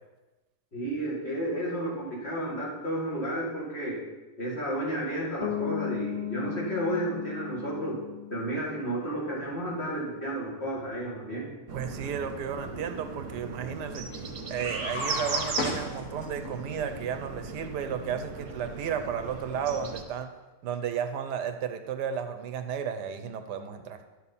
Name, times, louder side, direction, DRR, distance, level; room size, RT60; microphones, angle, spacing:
voice 1, 0.7-4.0 4.4-8.0 8.3-11.5, right 1 dB, 35° left, -5 dB, 2.4 m, -32 dB
Bass guitar, 5.4-9.3, left 12 dB, 85° left, 0.6 m, -36 dB
sound 1, 11.7-20.0, right 4 dB, 50° right, 1.2 m, -37 dB
voice 2, 11.7-14.0 14.5-20.3 20.6-24.0, right 7 dB, 80° right, 8 dB, 1.3 m, -33 dB
sound 2, 14.5-16.5, left 2 dB, 65° left, 1.8 m, -34 dB
11.0 x 7.1 x 4.1 m, 1.1 s
omnidirectional pair, 1.8 m